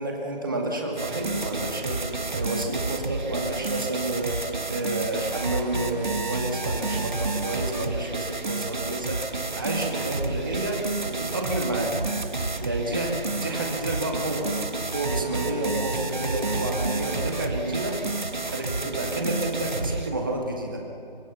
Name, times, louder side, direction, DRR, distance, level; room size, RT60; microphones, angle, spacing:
voice 1, 0.0-4.4 4.7-12.1 12.6-14.6 14.9-18.0 18.4-20.8, right 2 dB, 20° right, 0 dB, 2.2 m, -30 dB
sound 1, 1.0-20.1, right 3 dB, 50° right, 1.6 m, -30 dB
24.5 x 23.0 x 7.0 m, 2.9 s
figure-of-eight pair, 180°, 30 cm